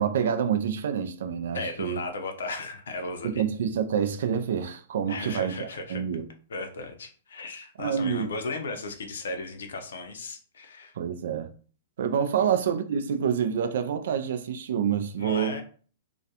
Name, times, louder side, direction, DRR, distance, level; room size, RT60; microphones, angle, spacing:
voice 1, 0.0-2.0 3.2-6.3 7.8-8.3 11.0-11.5 12.0-15.6, right 8 dB, 65° right, 0.3 m, -27 dB
voice 2, 1.5-3.4 5.1-6.0 6.5-10.9 12.4-12.5 15.2-15.6, left 3 dB, 75° left, 0.5 m, -36 dB
2.3 x 2.1 x 2.7 m
hypercardioid pair, 110°, 0 cm